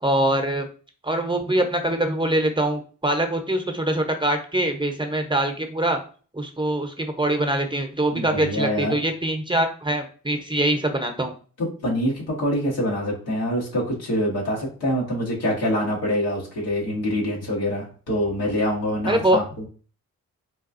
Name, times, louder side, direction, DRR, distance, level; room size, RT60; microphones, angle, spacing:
voice 1, 0.0-0.7 1.0-6.0 6.3-11.3 19.1-19.4, right 1 dB, 15° right, 5 dB, 0.7 m, -23 dB
voice 2, 8.1-8.9 11.6-19.6, equal, 90° left, -4 dB, 1.2 m, -25 dB
4.0 x 2.3 x 2.5 m, 0.39 s
supercardioid pair, 40°, 37 cm